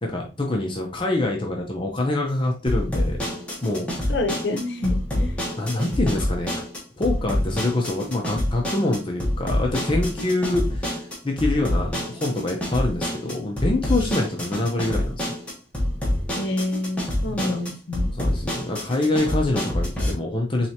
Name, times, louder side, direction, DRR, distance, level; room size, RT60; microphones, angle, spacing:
voice 1, 0.0-3.2 3.6-3.9 5.6-6.6 7.0-15.3 17.3-17.6 18.2-20.7, left 2 dB, 25° left, 1 dB, 0.6 m, -25 dB
sound 1, 2.7-20.1, left 1 dB, 5° left, 1.2 m, -27 dB
voice 2, 4.1-5.4 16.3-18.1, left 2 dB, 60° left, 5 dB, 0.7 m, -27 dB
4.4 x 3.2 x 2.8 m, 0.32 s
head